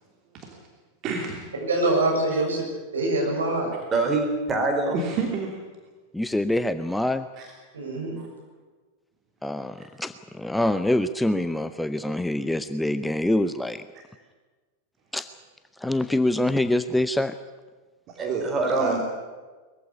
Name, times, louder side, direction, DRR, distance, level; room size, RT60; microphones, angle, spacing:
voice 1, 1.0-1.5 2.3-2.4 4.9-5.6 7.4-7.5 8.2-8.3 18.1-19.0, right 5 dB, 35° right, 1 dB, 3.0 m, -30 dB
voice 2, 1.7-2.6 2.9-3.7 7.7-8.2, right 2 dB, 70° right, 0 dB, 7.3 m, -24 dB
voice 3, 3.9-5.0 18.2-19.0, right 3 dB, 20° right, 4 dB, 4.5 m, -24 dB
voice 4, 6.1-7.3 9.4-13.8 15.1-15.3 15.8-17.3, left 1 dB, 5° left, 11 dB, 0.7 m, -25 dB
21.5 x 15.0 x 10.0 m, 1.3 s
figure-of-eight pair, 90°, 0 cm